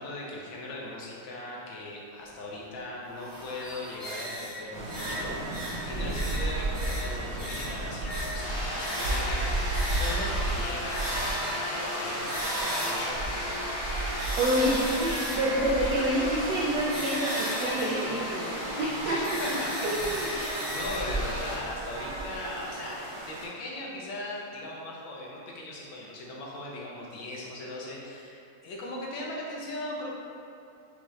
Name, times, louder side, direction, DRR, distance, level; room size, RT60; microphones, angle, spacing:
voice 1, 0.0-5.4 5.9-9.5 10.0-13.8 19.0-19.7 20.3-30.1, left 1 dB, 75° left, -4 dB, 1.5 m, -39 dB
sound 1, 2.2-2.3 3.1-13.4 13.9-21.0, equal, 40° right, 0.3 m, -36 dB
sound 2, 4.7-23.5, right 2 dB, 90° right, 1.6 m, -35 dB
sound 3, 8.4-21.6, left 1 dB, 60° left, 1.5 m, -35 dB
voice 2, 14.4-19.4 19.8-20.3, right 1 dB, 75° right, -4 dB, 1.0 m, -28 dB
6.9 x 2.4 x 3.1 m, 2.7 s
omnidirectional pair, 2.2 m